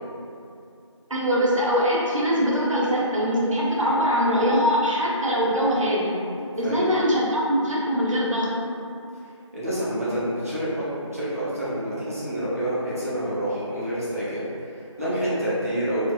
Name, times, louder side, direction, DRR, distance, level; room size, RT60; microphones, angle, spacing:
voice 1, 1.1-6.1 6.6-8.5, equal, 80° right, -5 dB, 0.7 m, -22 dB
voice 2, 9.5-16.1, right 1 dB, 30° right, -10 dB, 0.6 m, -28 dB
3.3 x 2.1 x 2.3 m, 2.5 s
figure-of-eight pair, 170°, 16 cm